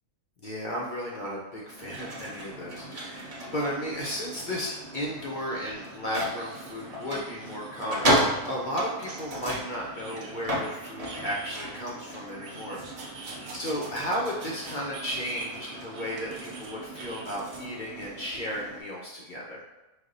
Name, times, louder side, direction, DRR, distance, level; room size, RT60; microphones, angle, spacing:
voice 1, 0.4-8.2 8.5-12.8 13.5-19.6, equal, 70° left, -4 dB, 0.4 m, -34 dB
sound 1, 1.6-18.8, equal, 30° right, 0.7 m, -34 dB
sound 2, 3.9-4.0 4.3-4.4 5.4-8.0 9.1-11.8 12.3-13.8 14.4-17.4, right 3 dB, 65° right, 1.0 m, -47 dB
sound 3, 12.7-14.9 15.2-16.7 17.0-17.7 18.3-18.5, right 2 dB, 85° right, 1.2 m, -46 dB
5.1 x 2.1 x 3.8 m, 1.0 s
omnidirectional pair, 1.6 m